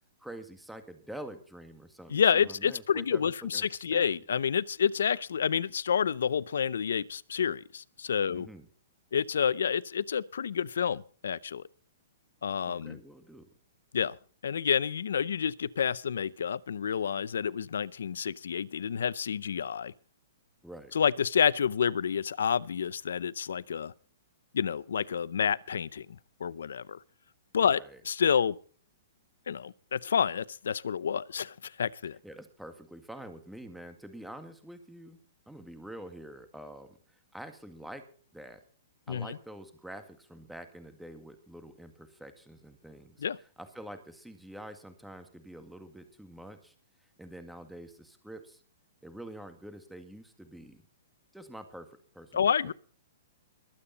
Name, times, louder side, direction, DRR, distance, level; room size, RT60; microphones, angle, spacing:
voice 1, 0.2-3.6 3.9-4.1 8.3-8.7 12.7-13.5 20.6-20.9 27.7-28.0 32.2-35.2 35.5-38.1 38.3-38.6 39.1-43.2 43.6-46.7 47.2-48.6 49.0-50.8 51.3-52.7, right 1 dB, ahead, 1.9 m, -46 dB
voice 2, 2.1-8.5 9.1-11.6 12.4-13.0 13.9-14.2 14.4-19.9 20.9-23.9 24.5-26.1 26.4-27.0 27.5-28.5 29.5-32.2 39.1-39.4 43.2-43.4 52.3-52.7, left 7 dB, 80° left, 0.6 m, -29 dB
21.5 x 8.7 x 4.1 m
hypercardioid pair, 140°, 0 cm